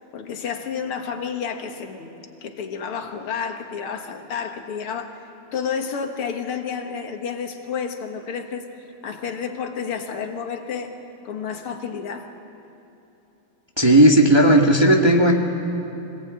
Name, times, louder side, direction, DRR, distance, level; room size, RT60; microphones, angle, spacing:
voice 1, 0.1-2.1 2.4-5.2 5.5-8.7 9.0-10.9 11.2-12.3, left 6 dB, 85° left, 5 dB, 2.4 m, -30 dB
voice 2, 13.8-15.3, right 1 dB, 15° right, 0 dB, 1.3 m, -14 dB
25.0 x 19.0 x 8.8 m, 3.0 s
omnidirectional pair, 2.4 m